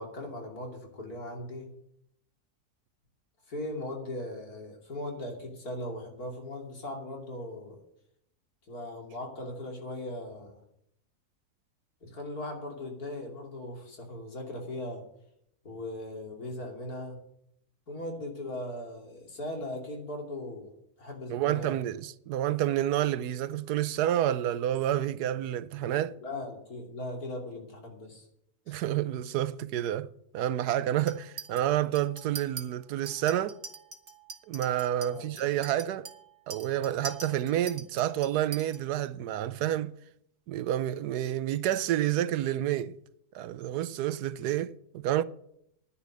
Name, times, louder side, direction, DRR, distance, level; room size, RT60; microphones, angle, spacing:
voice 1, 0.0-1.7 3.5-7.8 8.7-10.6 12.0-15.0 15.6-17.2 17.9-20.7 21.0-21.8 25.8-28.3 28.7-28.8 35.1-35.3, left 1 dB, 70° left, 3.3 m, -39 dB
voice 2, 21.3-26.1 28.7-30.1 30.3-33.6 34.5-36.1 36.5-39.9 40.5-43.0 43.3-45.2, right 12 dB, 85° right, 1.2 m, -29 dB
Chink clink, 31.1-31.6 31.9-32.6 33.1-38.8, right 4 dB, 35° right, 1.4 m, -43 dB
10.5 x 10.0 x 6.3 m
omnidirectional pair, 1.6 m